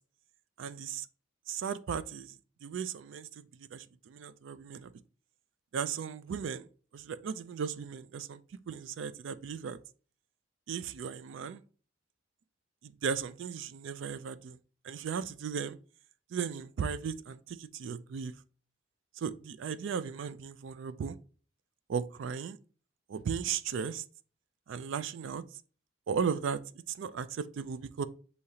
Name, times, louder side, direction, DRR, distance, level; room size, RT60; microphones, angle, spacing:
voice 1, 0.6-1.1 1.5-4.9 5.7-6.7 6.9-8.4 8.7-9.8 10.7-11.6 12.8-14.6 14.8-15.8 16.3-18.4 19.2-21.2 21.9-22.6 23.1-24.0 24.7-25.4 26.1-26.6 26.9-28.1, right 6 dB, 70° right, 0.3 m, -36 dB
6.3 x 2.8 x 2.8 m
head